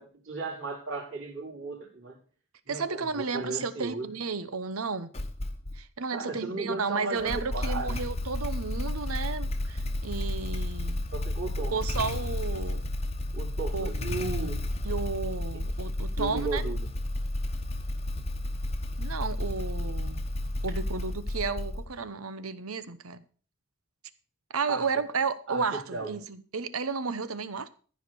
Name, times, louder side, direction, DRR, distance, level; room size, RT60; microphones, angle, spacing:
voice 1, 0.0-2.2 2.7-4.1 6.1-8.0 11.1-11.8 13.3-14.6 16.2-16.8 24.7-24.9 25.5-26.2, right 3 dB, 60° right, 4.3 m, -35 dB
voice 2, 2.7-5.1 5.7-11.1 11.7-12.9 13.7-13.9 14.8-16.6 19.0-20.2 20.6-23.2 24.5-27.7, right 4 dB, 85° right, 0.9 m, -33 dB
Motorcycle / Engine starting, 5.1-5.8 7.2-22.1, left 1 dB, 30° left, 1.1 m, -32 dB
14.5 x 5.1 x 6.8 m
head